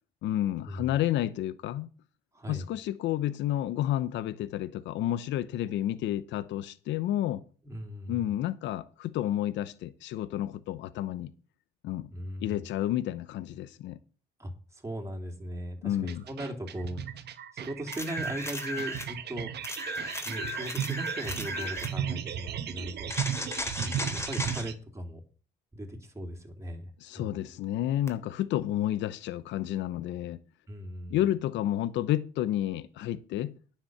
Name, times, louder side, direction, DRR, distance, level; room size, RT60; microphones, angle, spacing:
voice 1, 0.2-1.9 2.5-7.4 8.1-11.3 11.8-12.1 12.4-14.0 15.8-16.2 27.0-30.4 31.1-33.5, left 12 dB, 75° left, 0.8 m, -30 dB
voice 2, 2.3-2.7 7.6-8.2 12.1-12.6 14.4-17.0 17.5-19.5 20.2-23.2 23.8-25.2 25.7-27.4 30.7-31.2, equal, 15° right, 3.5 m, -38 dB
sound 1, 16.0-24.7, right 9 dB, 65° right, 1.3 m, -36 dB
sound 2, 17.9-19.1 19.6-22.0 23.1-24.7 28.1-28.2, left 1 dB, 15° left, 3.5 m, -35 dB
9.8 x 6.7 x 7.8 m
supercardioid pair, 65°, 19 cm